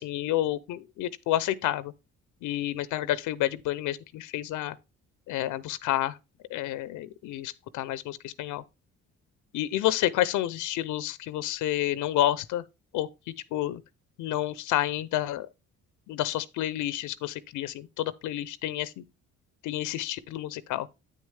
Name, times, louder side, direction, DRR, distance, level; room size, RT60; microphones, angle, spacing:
voice 1, 0.0-1.9 2.4-4.7 5.3-6.2 6.5-8.6 9.5-12.6 12.9-13.1 13.5-13.8 14.2-15.5 16.1-19.0 19.6-20.9, left 14 dB, 90° left, 0.6 m, -29 dB
8.6 x 6.4 x 3.3 m
cardioid pair, 90°, 30 cm